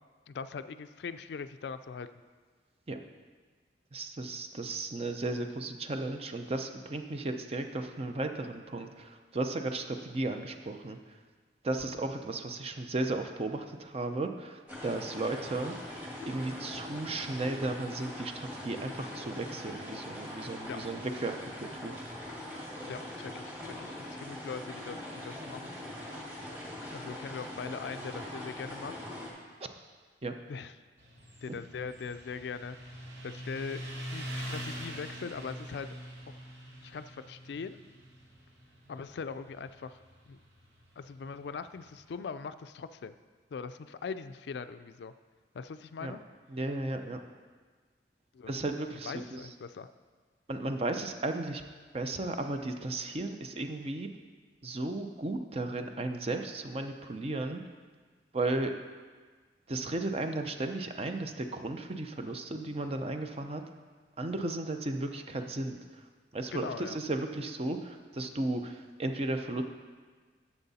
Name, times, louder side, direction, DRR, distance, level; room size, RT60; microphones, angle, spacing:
voice 1, 0.3-2.1 20.7-20.8 22.9-25.8 26.9-29.0 30.5-30.7 31.4-32.9 33.2-33.8 34.1-35.9 36.8-37.8 38.9-40.0 40.3-40.4 41.0-43.2 43.5-45.1 45.5-46.2 48.3-48.6 48.9-49.9 50.5-50.6 66.5-67.0, left 5 dB, 70° left, 12 dB, 0.4 m, -41 dB
voice 2, 3.9-11.0 11.6-15.8 16.2-22.0 29.6-29.7 30.2-30.4 46.0-46.1 46.5-47.2 48.5-49.4 50.5-51.6 51.9-54.1 54.6-57.6 58.3-58.7 59.7-63.6 64.2-65.8 66.3-69.6, right 2 dB, 35° right, 6 dB, 0.6 m, -35 dB
sound 1, 14.7-29.3, left 1 dB, 10° right, 1.9 m, -42 dB
Motorcycle, 31.0-42.1, equal, 85° right, 1.6 m, -44 dB
10.5 x 7.1 x 4.1 m, 1.5 s
head